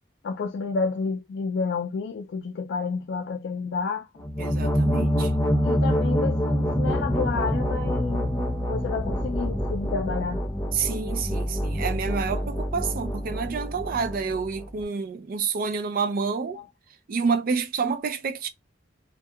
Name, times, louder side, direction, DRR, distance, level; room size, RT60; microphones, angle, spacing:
voice 1, 0.2-4.1 5.6-8.4 8.7-10.4 16.5-16.7, left 4 dB, 65° left, 0.3 m, -30 dB
sound 1, 4.2-14.8, equal, 15° left, 0.6 m, -26 dB
voice 2, 4.4-5.3 10.7-16.6 17.1-18.5, right 5 dB, 50° right, 0.4 m, -28 dB
2.7 x 2.2 x 2.2 m
head